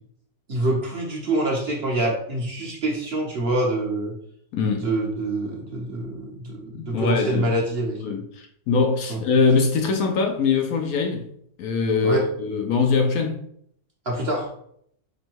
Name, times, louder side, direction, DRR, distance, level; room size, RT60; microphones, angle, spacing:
voice 1, 0.5-4.1 4.8-8.0 9.1-9.2 12.0-12.3 14.1-14.5, right 1 dB, 45° right, 1.0 m, -25 dB
voice 2, 4.5-4.9 6.7-7.5 8.0-11.2 11.6-13.4, left 4 dB, 70° left, 1.0 m, -22 dB
5.2 x 2.2 x 4.5 m
omnidirectional pair, 1.7 m